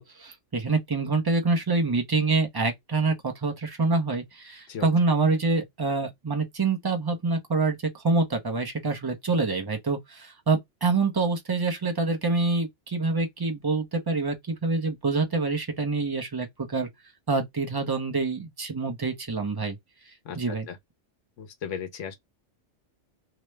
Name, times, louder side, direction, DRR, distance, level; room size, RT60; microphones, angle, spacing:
voice 1, 0.0-16.9 17.3-19.8 20.4-20.7, right 3 dB, 25° right, 0.5 m, -26 dB
voice 2, 20.2-20.8 21.4-22.1, left 7 dB, 85° left, 1.1 m, -36 dB
2.9 x 2.1 x 3.1 m
omnidirectional pair, 1.2 m